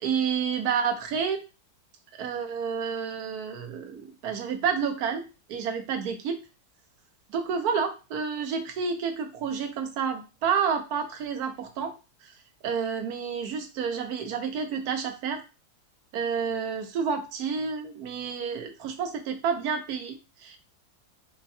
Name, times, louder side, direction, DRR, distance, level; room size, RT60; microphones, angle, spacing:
voice 1, 0.0-1.4 2.1-5.2 5.5-6.4 7.3-11.9 12.2-12.3 12.6-15.4 16.1-20.6, right 6 dB, 70° right, 6 dB, 1.2 m, -29 dB
4.4 x 2.2 x 4.2 m, 0.29 s
omnidirectional pair, 1.7 m